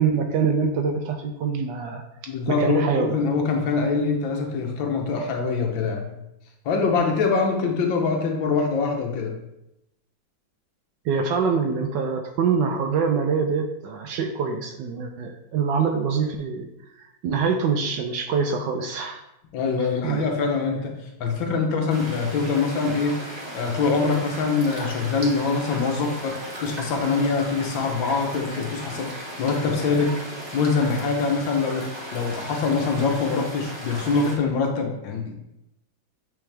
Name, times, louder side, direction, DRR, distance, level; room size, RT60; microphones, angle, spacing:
voice 1, 0.0-2.0 2.5-3.1 11.0-16.7 17.0-19.2 20.0-20.3, right 5 dB, 75° right, 4 dB, 1.2 m, -24 dB
voice 2, 2.3-6.1 6.6-9.3 19.5-23.2 23.5-30.2 30.5-35.3, left 4 dB, 80° left, 2 dB, 1.7 m, -24 dB
sound 1, 21.9-34.4, equal, 15° right, 1.1 m, -36 dB
8.2 x 3.5 x 3.3 m, 0.88 s
omnidirectional pair, 2.1 m